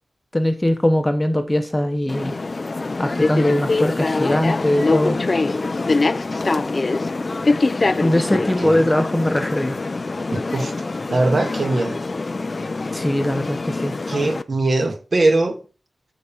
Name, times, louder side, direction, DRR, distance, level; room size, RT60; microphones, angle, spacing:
voice 1, 0.3-2.4 3.0-5.2 8.0-9.9 12.9-14.2, left 1 dB, 10° left, 1.2 m, -21 dB
sound 1, 2.1-14.4, left 3 dB, 30° left, 0.6 m, -24 dB
voice 2, 8.3-8.8 10.3-10.7 11.1-12.0 14.1-15.6, right 2 dB, 40° right, 1.9 m, -21 dB
13.5 x 5.1 x 7.4 m
wide cardioid pair, 145°, 0 cm